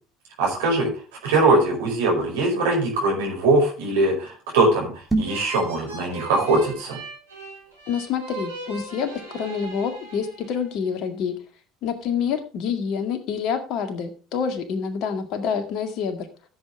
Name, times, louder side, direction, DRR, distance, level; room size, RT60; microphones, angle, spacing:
voice 1, 0.4-0.9 1.2-4.9 5.2-7.0, right 2 dB, 65° right, -1 dB, 5.2 m, -21 dB
sound 1, 5.0-5.5, right 2 dB, 15° right, 2.9 m, -25 dB
sound 2, 5.2-10.7, right 3 dB, 85° right, 3.3 m, -38 dB
voice 2, 7.9-11.4 11.8-16.3, left 7 dB, 50° left, 8 dB, 1.9 m, -27 dB
15.0 x 7.9 x 3.4 m, 0.37 s
figure-of-eight pair, 60°, 0 cm